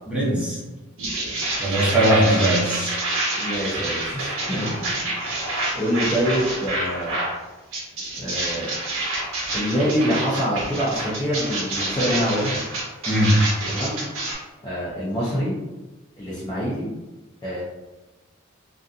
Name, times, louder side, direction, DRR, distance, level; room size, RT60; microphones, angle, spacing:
voice 1, 0.1-0.6 1.6-2.9 13.1-13.5, right 1 dB, 5° right, -8 dB, 0.8 m, -20 dB
sound 1, 1.0-7.4 7.7-14.3, right 2 dB, 80° right, 0.8 m, -27 dB
voice 2, 3.4-5.0 5.7-7.2 8.2-8.7 9.5-12.6 13.7-14.0 14.6-15.6 16.2-16.9 17.4-17.6, equal, 20° left, -8 dB, 0.5 m, -25 dB
2.6 x 2.4 x 2.4 m, 1.1 s
head